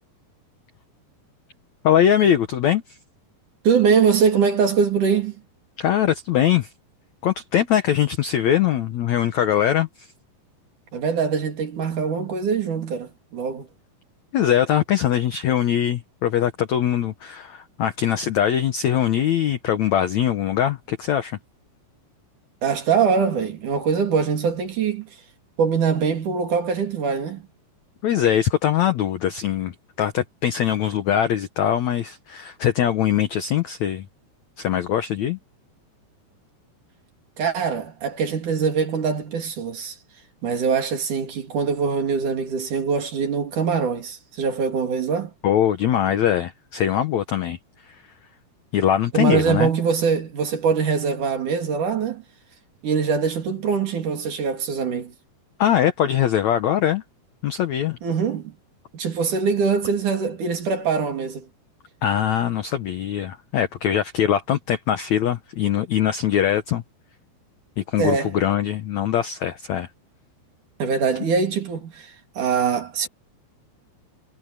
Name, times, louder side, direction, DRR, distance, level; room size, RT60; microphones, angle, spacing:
voice 1, 1.8-2.8 5.8-6.7 7.2-10.1 14.3-21.4 28.0-34.1 34.6-35.4 45.4-47.6 48.7-49.7 55.6-57.0 57.4-58.0 62.0-66.8 67.8-69.9, left 10 dB, 85° left, 1.6 m, -22 dB
voice 2, 3.6-5.4 10.9-13.7 22.6-25.1 25.6-27.4 37.4-40.0 40.4-45.3 49.1-52.2 52.8-55.1 58.0-58.5 58.9-61.5 68.0-68.3 70.8-73.1, right 6 dB, 50° right, 4.0 m, -23 dB
omnidirectional pair, 4.9 m